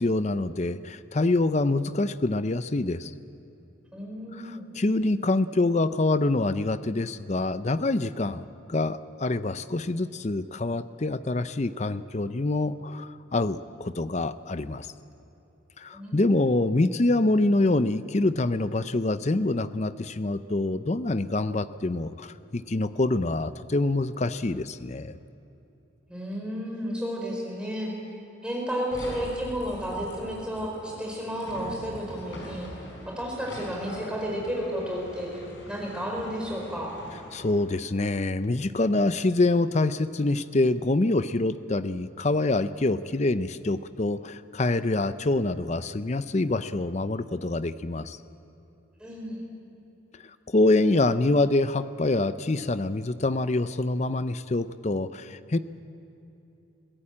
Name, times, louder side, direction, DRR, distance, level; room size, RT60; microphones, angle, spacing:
voice 1, 0.0-3.1 4.3-14.9 15.8-25.2 37.3-48.2 50.5-55.6, left 2 dB, 35° left, 13 dB, 0.6 m, -26 dB
voice 2, 3.9-4.7 15.9-16.3 26.1-27.9 28.4-32.7 33.1-35.3 35.7-37.0 49.0-49.4, equal, 5° right, -2 dB, 4.7 m, -32 dB
sound 1, 28.9-37.6, equal, 65° left, 5.8 m, -41 dB
23.0 x 16.0 x 8.8 m, 2.9 s
head